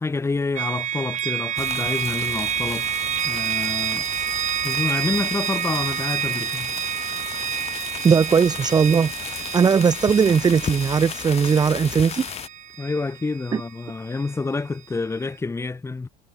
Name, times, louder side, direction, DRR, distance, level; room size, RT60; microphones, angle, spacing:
voice 1, 0.0-2.9 3.2-4.1 4.6-6.7 12.8-16.1, left 3 dB, 15° left, 1.2 m, -28 dB
sound 1, 0.6-14.4, right 10 dB, 45° right, 5.0 m, -29 dB
sound 2, 1.6-12.5, left 8 dB, 35° left, 1.9 m, -35 dB
voice 2, 8.0-12.3 13.5-13.6, right 6 dB, 25° right, 0.7 m, -19 dB
supercardioid pair, 90°, 18 cm